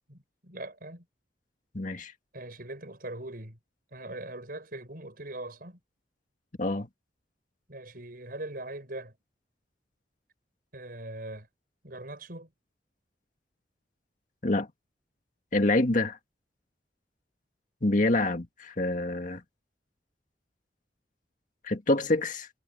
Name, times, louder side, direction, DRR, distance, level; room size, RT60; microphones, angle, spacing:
voice 1, 0.1-1.1 2.3-3.6 3.9-5.8 7.7-9.1 10.7-11.5 11.8-12.5, right 2 dB, 55° right, 6.3 m, -41 dB
voice 2, 1.7-2.1 6.6-6.9 14.4-14.7 15.5-16.2 17.8-19.4 21.6-22.5, left 2 dB, 45° left, 1.9 m, -26 dB
head